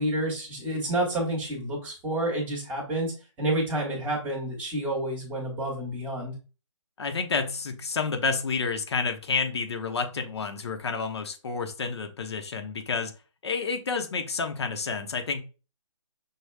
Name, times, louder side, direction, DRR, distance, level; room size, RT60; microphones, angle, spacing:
voice 1, 0.0-3.1 3.4-6.3, right 1 dB, 10° right, -4 dB, 1.3 m, -29 dB
voice 2, 7.0-13.1 13.4-15.4, left 4 dB, 55° left, 7 dB, 0.8 m, -29 dB
6.4 x 2.3 x 3.2 m, 0.33 s
hypercardioid pair, 165°, 17 cm